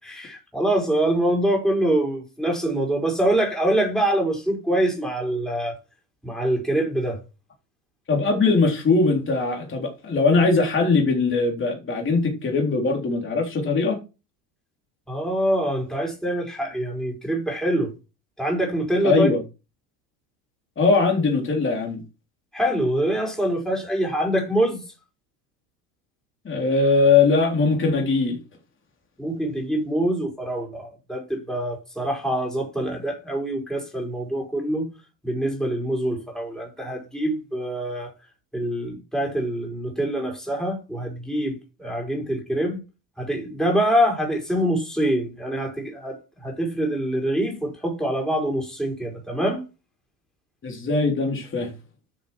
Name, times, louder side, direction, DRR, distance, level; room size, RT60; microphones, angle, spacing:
voice 1, 0.0-5.8 6.2-7.2 15.1-17.9 18.4-19.3 22.5-24.8 29.2-34.9 35.2-38.1 38.5-42.8 43.2-49.6, right 1 dB, ahead, 4.8 m, -25 dB
voice 2, 8.1-14.0 19.0-19.4 20.8-22.0 26.5-28.4 50.6-51.7, left 4 dB, 25° left, 3.6 m, -21 dB
9.8 x 6.6 x 6.0 m
hypercardioid pair, 100°, 49 cm